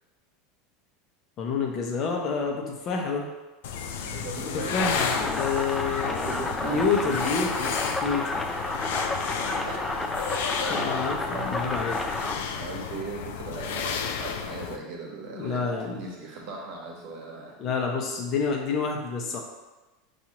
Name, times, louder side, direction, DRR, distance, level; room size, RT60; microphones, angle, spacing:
voice 1, 1.4-3.3 4.4-8.3 10.7-12.0 15.3-16.0 17.6-19.4, left 5 dB, 45° left, 1 dB, 0.9 m, -28 dB
sound 1, 3.6-14.8, left 7 dB, 75° left, 0.4 m, -33 dB
voice 2, 4.0-5.0 6.2-6.8 9.1-10.1 10.5-11.5 12.5-17.5, right 3 dB, 65° right, -1 dB, 1.1 m, -39 dB
sound 2, 4.8-12.4, left 2 dB, 15° left, 0.5 m, -31 dB
5.9 x 2.6 x 2.9 m, 1.1 s
hypercardioid pair, 100°, 0 cm